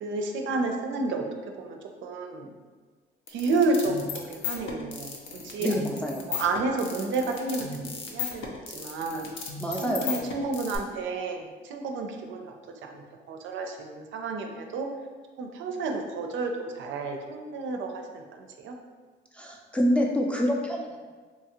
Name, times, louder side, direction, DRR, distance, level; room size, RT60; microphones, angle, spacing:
voice 1, 0.0-1.2 1.6-2.5 3.3-5.2 5.4-5.7 6.2-9.3 9.8-12.5 12.8-14.9 15.4-18.8, right 3 dB, 75° right, 3 dB, 0.4 m, -31 dB
sound 1, 3.3-10.8, left 6 dB, 75° left, 0.5 m, -36 dB
voice 2, 5.6-6.2 9.6-10.3 19.3-21.0, equal, 5° left, 0 dB, 0.4 m, -27 dB
2.9 x 2.4 x 2.8 m, 1.4 s
cardioid pair, 90°, 20 cm